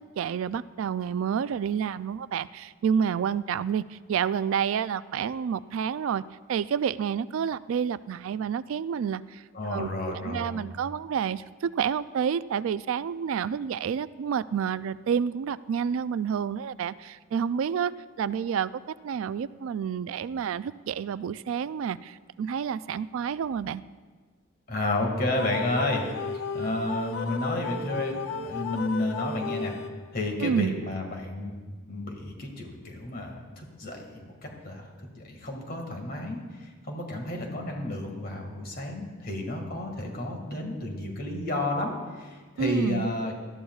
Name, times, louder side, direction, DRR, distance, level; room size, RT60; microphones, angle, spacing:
voice 1, 0.2-6.2 6.5-9.9 10.2-17.9 18.2-18.7 19.0-23.8 30.4-30.7 42.6-43.1, right 7 dB, 85° right, 16 dB, 0.3 m, -29 dB
voice 2, 9.5-10.5 24.7-29.7 30.1-31.5 31.9-34.3 34.6-34.9 35.2-36.4 36.9-43.3, left 2 dB, 45° left, 2 dB, 1.9 m, -31 dB
sound 1, 25.4-30.3, left 5 dB, 70° left, 0.6 m, -35 dB
18.5 x 13.0 x 2.4 m, 1.4 s
head